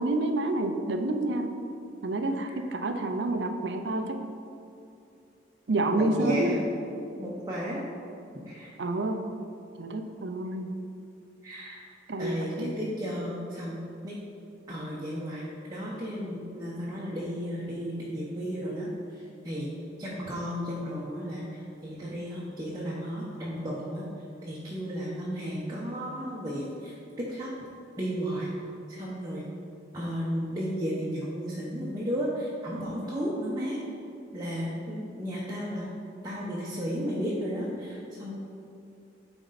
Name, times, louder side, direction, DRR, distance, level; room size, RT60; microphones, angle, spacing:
voice 1, 0.0-1.5 2.0-4.2 5.7-6.6 8.8-9.2 9.8-10.7 12.1-12.7, right 2 dB, 70° right, 6 dB, 0.6 m, -28 dB
voice 2, 5.9-6.6 7.2-7.8 8.5-8.7 11.4-11.8 12.2-14.1 14.7-19.7 20.0-24.0 24.4-27.5 28.0-28.5 28.9-29.5 29.9-33.8 34.3-35.9 36.2-38.3, equal, 20° right, -7 dB, 1.0 m, -33 dB
10.0 x 4.4 x 4.1 m, 2.5 s
head